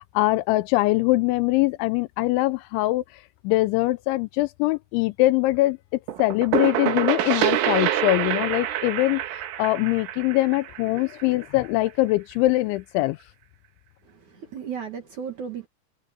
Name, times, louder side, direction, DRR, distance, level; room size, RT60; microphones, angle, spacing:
voice 1, 0.0-3.0 3.4-5.8 6.2-13.2, left 19 dB, 80° left, 2.9 m, -22 dB
sound 1, 6.1-11.7, right 12 dB, 85° right, 4.2 m, -26 dB
voice 2, 14.1-15.7, right 7 dB, 55° right, 2.4 m, -35 dB
omnidirectional pair, 5.5 m